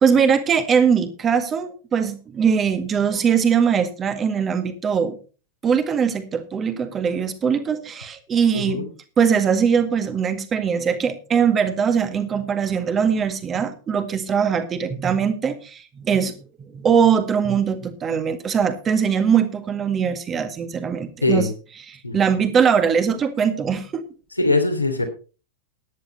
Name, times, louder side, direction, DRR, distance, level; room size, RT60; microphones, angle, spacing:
voice 1, 0.0-5.2 5.6-8.9 9.2-16.3 16.6-21.5 21.9-24.0, right 7 dB, 25° right, 9 dB, 1.8 m, -21 dB
voice 2, 8.5-8.8 21.2-21.5 22.0-22.2 24.4-25.0, left 2 dB, 85° left, 5 dB, 2.9 m, -21 dB
14.0 x 10.5 x 4.1 m, 0.36 s
figure-of-eight pair, 90°, 0 cm